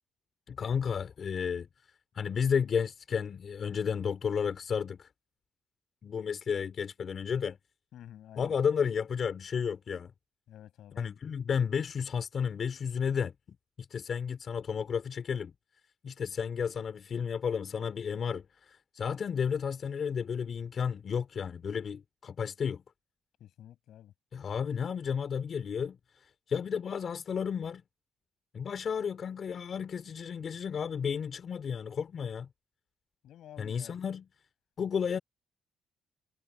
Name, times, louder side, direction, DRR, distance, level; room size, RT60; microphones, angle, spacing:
voice 1, 0.5-1.7 2.1-5.1 6.0-7.6 8.4-10.1 11.0-13.3 13.8-15.5 16.0-22.8 24.3-27.8 28.5-32.5 33.6-34.3 34.8-35.2, left 7 dB, 50° left, 3.2 m, -32 dB
voice 2, 7.9-8.5 10.5-11.0 23.4-24.1 33.2-34.0, left 11 dB, 75° left, 6.7 m, -50 dB
cardioid pair, 90°, 0 cm